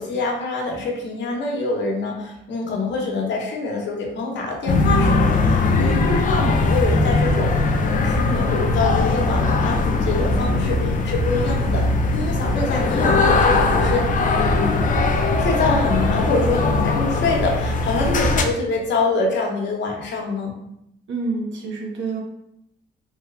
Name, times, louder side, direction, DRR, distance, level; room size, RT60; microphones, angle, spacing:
voice 1, 0.0-7.5 7.8-11.8 12.1-14.7 15.3-20.5, left 3 dB, 65° left, 0 dB, 0.8 m, -25 dB
sound 1, 4.7-18.4, left 2 dB, 40° left, 0.4 m, -20 dB
voice 2, 21.1-22.2, right 3 dB, 70° right, 0 dB, 0.9 m, -27 dB
3.2 x 2.8 x 2.4 m, 0.79 s
cardioid pair, 90°, 20 cm